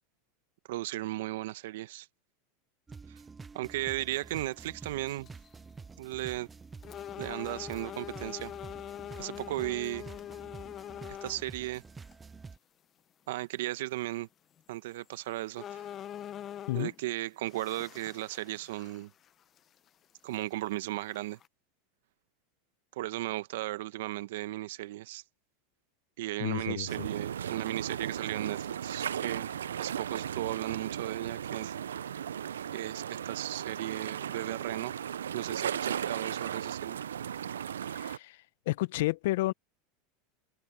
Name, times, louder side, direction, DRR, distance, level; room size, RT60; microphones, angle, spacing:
voice 1, 0.7-2.1 3.1-3.2 3.5-5.3 6.0-6.5 7.2-8.5 9.2-10.0 11.1-11.8 13.3-14.3 14.7-15.9 16.7-19.1 20.2-21.4 22.9-25.2 26.2-29.5 29.8-31.8 32.7-34.9 35.3-37.0, right 16 dB, 75° right, 1.2 m, -36 dB
sound 1, 2.9-12.6, right 4 dB, 20° right, 0.5 m, -49 dB
sound 2, 4.4-4.6 5.1-5.5 6.1-6.2 6.8-11.5 12.1-12.2 14.6-14.7 15.1-15.2 15.6-17.0 17.4-19.3 19.6-19.7 20.3-20.4 21.1-21.5, left 10 dB, 35° left, 0.7 m, -43 dB
voice 2, 26.4-27.1 37.9-38.4 38.7-39.5, left 18 dB, 70° left, 0.6 m, -31 dB
sound 3, 26.9-38.2, right 9 dB, 90° right, 0.4 m, -36 dB
hypercardioid pair, 100°, 0 cm